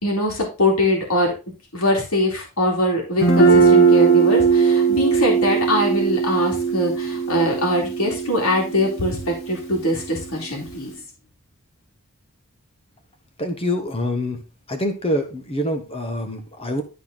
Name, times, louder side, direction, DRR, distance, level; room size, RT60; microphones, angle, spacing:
voice 1, 0.0-1.3 1.7-10.9, left 1 dB, 75° left, 0 dB, 2.9 m, -22 dB
Guitar, 3.2-10.9, right 5 dB, 60° left, 2.0 m, -19 dB
voice 2, 13.4-14.4 14.7-16.8, left 1 dB, 25° left, 5 dB, 1.3 m, -25 dB
12.0 x 4.2 x 4.0 m, 0.30 s
head